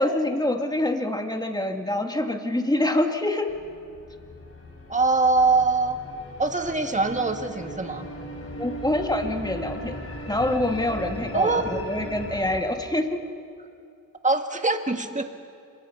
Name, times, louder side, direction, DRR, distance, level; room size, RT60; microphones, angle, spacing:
voice 1, 0.0-3.6 8.6-10.0 10.3-13.2, left 1 dB, 10° left, 4 dB, 2.1 m, -26 dB
sound 1, 3.5-12.6, equal, 45° left, 4.5 m, -38 dB
voice 2, 4.9-6.0 6.4-8.1 11.3-11.8 14.2-15.2, right 3 dB, 20° right, 5 dB, 1.8 m, -23 dB
27.5 x 21.5 x 5.9 m, 2.5 s
cardioid pair, 60°, 33 cm